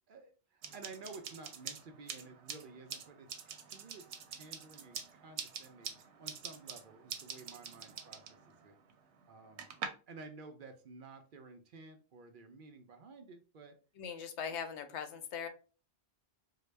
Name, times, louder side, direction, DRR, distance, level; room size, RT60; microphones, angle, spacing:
voice 1, 0.1-8.8 9.3-9.7 10.1-13.8, right 3 dB, 60° right, 6 dB, 0.6 m, -53 dB
sound 1, 0.6-9.9, right 7 dB, 90° right, 0.9 m, -46 dB
voice 2, 14.0-15.5, left 7 dB, 90° left, 8 dB, 0.9 m, -40 dB
3.8 x 2.1 x 3.2 m, 0.35 s
omnidirectional pair, 1.1 m